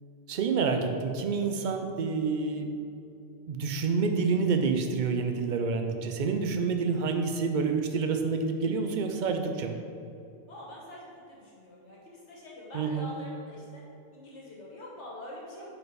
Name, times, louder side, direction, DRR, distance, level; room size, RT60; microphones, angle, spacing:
voice 1, 0.3-2.7 3.5-9.8 12.7-13.1, right 4 dB, 55° right, 5 dB, 0.6 m, -28 dB
voice 2, 10.5-13.8 14.1-15.8, equal, 80° left, -4 dB, 1.6 m, -45 dB
4.6 x 4.3 x 4.9 m, 2.6 s
omnidirectional pair, 1.2 m